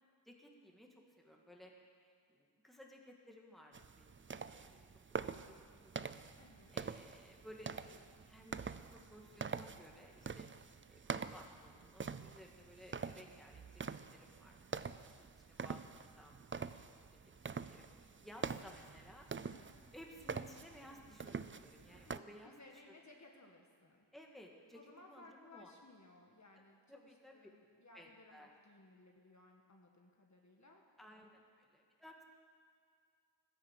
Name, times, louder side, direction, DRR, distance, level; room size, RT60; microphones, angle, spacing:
voice 1, 0.3-1.7 2.0-6.1 6.7-10.5 10.9-13.8 14.1-19.3 19.9-22.5 24.1-25.7 26.9-27.4 27.9-28.5 31.0-32.2, equal, ahead, 0 dB, 1.8 m, -58 dB
sound 1, 3.7-22.2, right 5 dB, 30° right, 0.4 m, -46 dB
voice 2, 6.4-6.8 19.4-19.8 22.0-24.1 24.7-31.4, left 2 dB, 35° left, 1 dB, 1.5 m, -61 dB
14.0 x 10.5 x 7.5 m, 2.2 s
wide cardioid pair, 75°, 46 cm